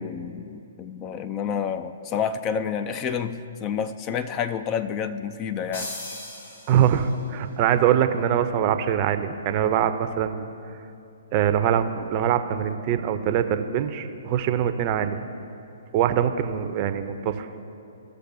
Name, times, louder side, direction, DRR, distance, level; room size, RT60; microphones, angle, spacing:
voice 1, 0.0-5.9, left 7 dB, 30° left, 10 dB, 0.4 m, -29 dB
sound 1, 5.7-7.4, left 2 dB, 65° left, 2.0 m, -38 dB
voice 2, 6.7-10.5 11.3-15.2 15.9-17.5, right 9 dB, 35° right, 9 dB, 0.6 m, -23 dB
16.0 x 6.6 x 2.7 m, 2.7 s
figure-of-eight pair, 125°, 0 cm